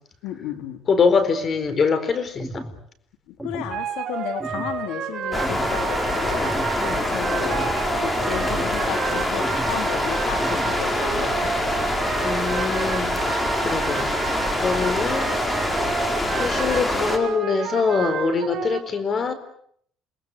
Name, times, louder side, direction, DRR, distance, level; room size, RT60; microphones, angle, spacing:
voice 1, 0.2-0.8 3.3-6.6 7.1-11.7, left 11 dB, 85° left, 7 dB, 3.6 m, -33 dB
voice 2, 0.9-2.6 6.8-7.1 12.2-15.4 16.4-19.3, left 5 dB, 35° left, 12 dB, 4.4 m, -24 dB
sound 1, 2.4-2.8 3.4-3.8 4.4-4.8 5.4-5.8 6.4-6.8 7.4-7.8 8.4-8.8 9.4-9.8 10.4-10.8, right 1 dB, ahead, 2.9 m, -35 dB
sound 2, 3.7-18.8, right 9 dB, 50° right, 4.1 m, -31 dB
sound 3, 5.3-17.2, left 1 dB, 15° left, 4.4 m, -25 dB
29.0 x 20.5 x 8.4 m, 0.66 s
cardioid pair, 130°, 0 cm